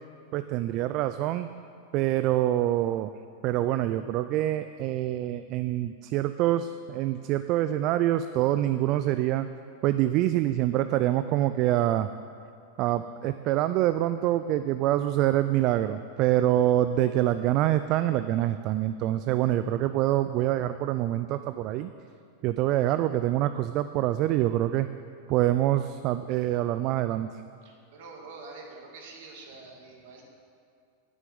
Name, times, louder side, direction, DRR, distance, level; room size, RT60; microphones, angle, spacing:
voice 1, 0.3-1.5 1.9-3.1 3.4-9.5 9.8-12.1 12.8-21.9 22.4-24.9 25.3-27.3, right 13 dB, 50° right, 11 dB, 0.3 m, -25 dB
voice 2, 27.6-30.2, right 3 dB, 65° right, 1 dB, 1.8 m, -46 dB
9.5 x 7.5 x 5.4 m, 2.4 s
hypercardioid pair, 105°, 0 cm